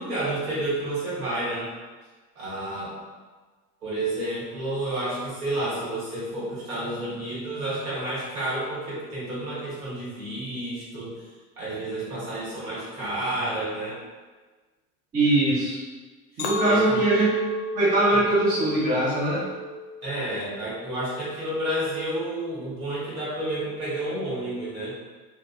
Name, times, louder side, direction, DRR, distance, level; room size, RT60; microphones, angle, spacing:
voice 1, 0.0-1.7 2.3-2.9 3.8-11.2 11.6-14.0 16.4-17.0 20.0-24.9, right 1 dB, 60° right, -8 dB, 1.5 m, -30 dB
voice 2, 15.1-15.8 16.4-17.3 17.8-19.4, right 1 dB, 20° right, -6 dB, 0.5 m, -22 dB
Chink clink, 16.4-20.7 21.2-21.6, right 1 dB, 55° left, 0.6 m, -29 dB
2.8 x 2.2 x 2.7 m, 1.4 s
figure-of-eight pair, 75°, 47 cm